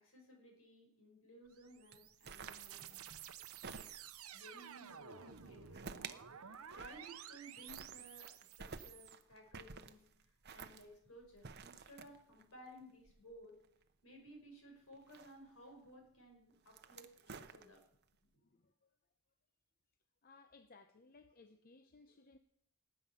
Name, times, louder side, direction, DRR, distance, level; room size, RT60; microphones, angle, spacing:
voice 1, 0.0-3.0 4.3-10.0 10.5-13.6 14.0-17.8, equal, 70° left, 2 dB, 5.0 m, -58 dB
sound 1, 1.5-9.1, right 9 dB, 80° right, 0.8 m, -53 dB
sound 2, 1.9-4.3 5.2-6.2 6.5-7.4 7.7-13.8 14.9-15.7 16.5-18.0, right 5 dB, 50° right, 0.8 m, -52 dB
voice 2, 18.2-19.0 20.2-22.4, left 3 dB, 40° left, 8 dB, 0.7 m, -63 dB
18.5 x 8.6 x 5.6 m, 0.75 s
head